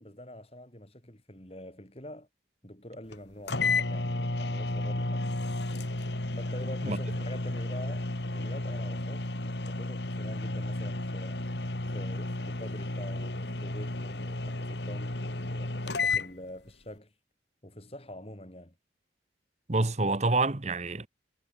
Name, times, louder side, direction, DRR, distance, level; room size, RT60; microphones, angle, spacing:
voice 1, 0.0-2.3 2.6-5.3 6.4-11.5 11.9-17.1 17.6-18.7, left 1 dB, 30° left, 4.8 m, -45 dB
sound 1, 3.1-3.2 3.5-16.3, left 2 dB, 70° left, 2.2 m, -32 dB
voice 2, 19.7-21.1, right 2 dB, 35° right, 1.1 m, -27 dB
head